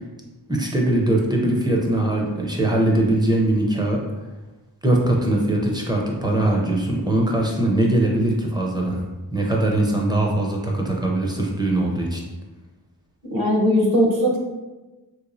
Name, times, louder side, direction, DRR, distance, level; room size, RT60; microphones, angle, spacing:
voice 1, 0.5-4.0 4.8-9.0 9.3-12.2, right 1 dB, 10° right, -1 dB, 0.4 m, -21 dB
voice 2, 13.3-14.4, equal, 60° right, -1 dB, 0.8 m, -19 dB
3.2 x 3.0 x 2.5 m, 1.1 s
wide cardioid pair, 135°, 40 cm